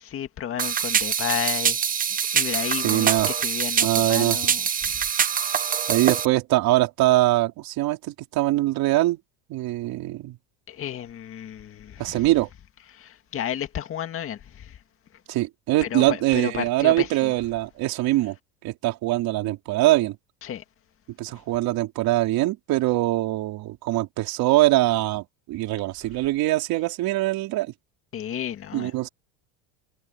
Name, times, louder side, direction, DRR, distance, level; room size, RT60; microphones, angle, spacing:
voice 1, 0.0-1.8 2.3-5.6 10.7-12.3 12.9-14.8 15.8-17.3 20.4-20.6 28.1-28.9, left 9 dB, 25° left, 2.1 m, -32 dB
sound 1, 0.6-6.3, right 8 dB, 20° right, 0.8 m, -24 dB
voice 2, 2.8-3.3 3.8-4.4 5.9-9.2 9.5-10.4 12.0-12.5 15.3-18.4 18.6-20.2 21.2-27.7 28.7-29.1, right 17 dB, 45° right, 4.0 m, -23 dB
cardioid pair, 155°, 47 cm